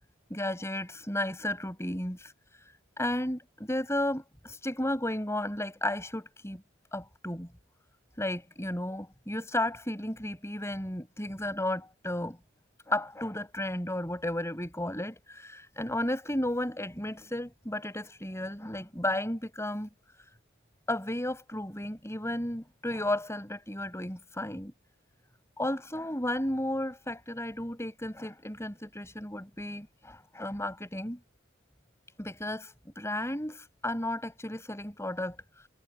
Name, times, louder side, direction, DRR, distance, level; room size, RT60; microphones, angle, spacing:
voice 1, 0.3-6.6 6.9-7.5 8.2-12.4 12.9-19.9 20.2-20.3 20.9-24.7 25.6-31.2 32.2-35.7, left 1 dB, 15° left, 6.3 m, -33 dB
head